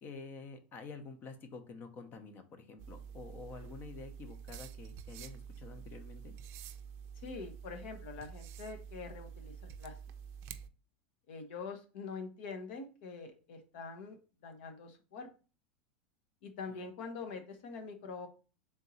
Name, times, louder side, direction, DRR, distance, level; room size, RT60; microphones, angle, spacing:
voice 1, 0.0-6.3 16.7-16.9, left 4 dB, 35° left, 8 dB, 0.7 m, -49 dB
sound 1, 2.8-10.7, right 7 dB, 50° right, 0.4 m, -48 dB
voice 2, 7.2-9.9 11.3-14.2 14.4-15.3 16.4-18.3, left 4 dB, 70° left, 6 dB, 1.0 m, -44 dB
3.6 x 2.7 x 4.1 m, 0.34 s
supercardioid pair, 120°, 6 cm